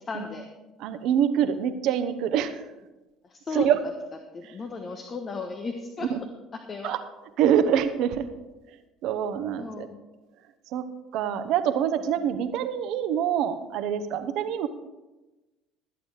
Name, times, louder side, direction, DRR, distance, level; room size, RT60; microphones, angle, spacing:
voice 1, 0.1-0.5 3.2-3.7 4.3-6.1 6.7-7.0 9.6-10.0, left 4 dB, 40° left, 4 dB, 1.2 m, -35 dB
voice 2, 0.8-2.6 3.5-3.8 4.4-4.5 6.1-6.2 6.8-7.0 7.4-8.2 9.0-9.9 10.7-10.8 11.1-14.7, right 9 dB, 65° right, 10 dB, 0.9 m, -25 dB
13.5 x 8.4 x 5.0 m, 1.1 s
hypercardioid pair, 65°, 0 cm